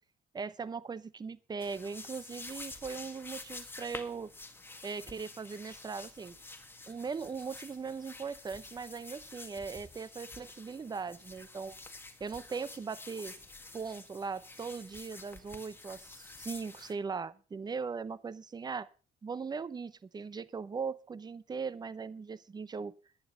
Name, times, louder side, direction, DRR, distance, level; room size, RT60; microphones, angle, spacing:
voice 1, 0.3-4.3 4.8-6.4 6.9-11.8 12.2-13.3 13.7-18.9 19.2-22.9, right 5 dB, 25° right, 17 dB, 0.8 m, -39 dB
sound 1, 1.6-16.9, left 2 dB, 15° left, 1.8 m, -49 dB
11.0 x 10.5 x 5.4 m, 0.36 s
cardioid pair, 110°, 17 cm